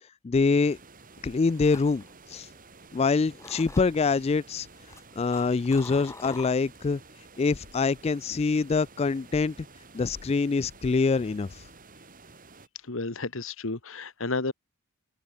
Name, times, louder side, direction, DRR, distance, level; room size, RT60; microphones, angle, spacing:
voice 1, 0.2-0.8 1.2-2.0 2.3-2.5 2.9-4.7 5.2-7.0 7.4-9.5 9.9-11.5, left 4 dB, 30° left, 0.3 m, -25 dB
sound 1, 0.7-12.7, right 3 dB, 40° right, 4.5 m, -52 dB
sound 2, 1.2-3.0 3.4-4.1 4.7-6.9 7.3-7.6, left 2 dB, 15° left, 1.9 m, -45 dB
voice 2, 12.8-14.5, left 3 dB, 65° left, 1.5 m, -32 dB
open air
head